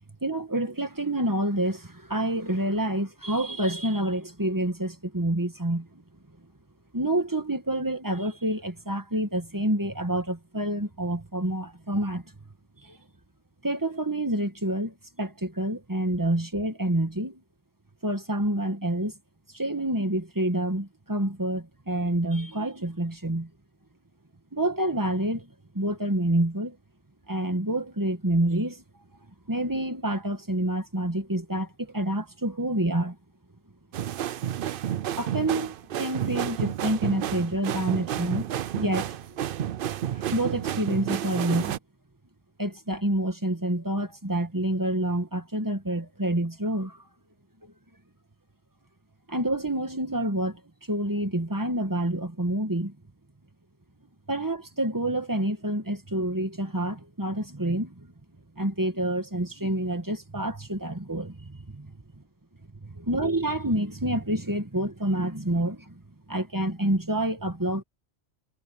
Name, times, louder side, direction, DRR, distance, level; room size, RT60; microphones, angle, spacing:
voice 1, 0.2-6.0 6.9-12.2 12.8-13.0 13.6-17.4 18.0-19.1 19.5-23.5 24.5-26.8 27.3-28.8 29.5-33.2 35.2-38.5 38.7-39.2 40.1-41.7 42.6-47.0 47.6-47.7 49.3-50.6 50.9-52.9 54.3-58.1 58.6-61.9 62.8-66.0 66.3-67.8, right 1 dB, 20° right, 1.8 m, -28 dB
sound 1, 33.9-41.8, right 10 dB, 60° right, 0.7 m, -31 dB
omnidirectional pair, 1.1 m